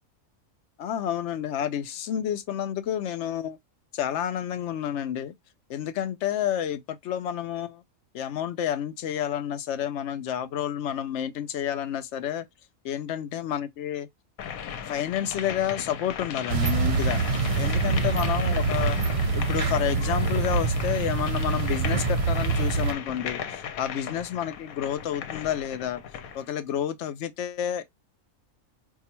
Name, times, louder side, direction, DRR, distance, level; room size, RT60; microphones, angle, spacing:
voice 1, 0.8-3.6 3.9-5.3 5.7-7.8 8.1-12.5 12.8-14.1 14.9-17.2 17.6-19.0 19.3-26.0 26.3-27.8, left 10 dB, 65° left, 0.8 m, -30 dB
sound 1, 14.4-26.5, left 8 dB, 85° left, 1.1 m, -37 dB
sound 2, 16.5-22.9, right 4 dB, 55° right, 0.3 m, -25 dB
4.6 x 2.3 x 2.9 m
omnidirectional pair, 1.5 m